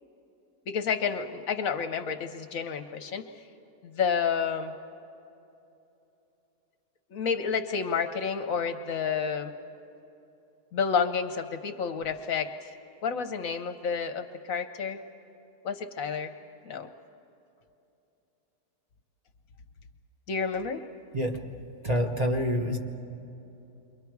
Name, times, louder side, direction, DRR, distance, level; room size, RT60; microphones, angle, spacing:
voice 1, 0.7-3.2 3.9-4.7 7.1-9.5 10.7-12.7 13.0-15.0 15.6-16.3 16.6-16.9 20.3-20.8, left 6 dB, 65° left, 8 dB, 1.1 m, -30 dB
voice 2, 21.8-22.8, equal, 30° right, 0 dB, 1.1 m, -27 dB
29.0 x 23.5 x 4.7 m, 2.9 s
omnidirectional pair, 1.7 m